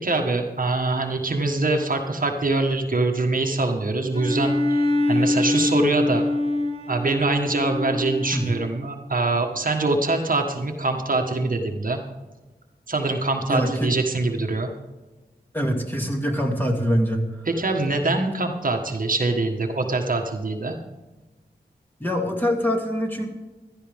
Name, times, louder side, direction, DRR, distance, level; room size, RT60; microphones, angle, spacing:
voice 1, 0.0-6.2 6.9-12.0 12.9-14.7 17.5-20.8, right 2 dB, 55° right, 3 dB, 1.5 m, -24 dB
Bowed string instrument, 4.1-8.8, left 2 dB, 35° left, 3.1 m, -24 dB
voice 2, 13.5-13.9 15.5-17.3 22.0-23.3, equal, 10° left, 1 dB, 2.5 m, -24 dB
16.0 x 12.5 x 3.6 m, 1.2 s
wide cardioid pair, 65°, 17 cm